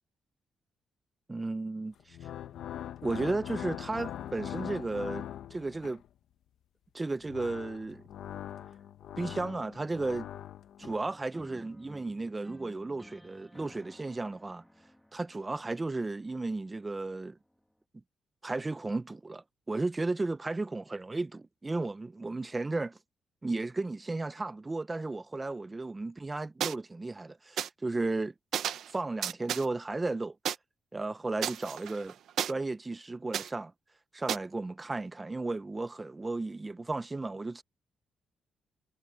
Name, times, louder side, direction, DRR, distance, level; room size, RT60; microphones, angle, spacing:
voice 1, 1.3-2.2 3.0-5.3 5.5-6.0 6.9-8.0 9.2-10.3 10.8-14.6 15.1-17.4 18.4-23.0 23.4-28.3 28.9-30.4 30.9-32.2 32.4-33.7 34.1-37.6, right 2 dB, 20° right, 0.8 m, -34 dB
sound 1, 2.0-6.1 7.0-11.0, left 10 dB, 80° left, 1.0 m, -42 dB
sound 2, 10.8-16.8, equal, 5° left, 2.6 m, -54 dB
sound 3, 26.6-26.7 27.6-27.7 28.5-28.9 29.2-29.7 30.5-30.6 31.4-32.5 33.3-33.5 34.3-34.4, right 10 dB, 75° right, 0.9 m, -32 dB
cardioid pair, 110°, 0 cm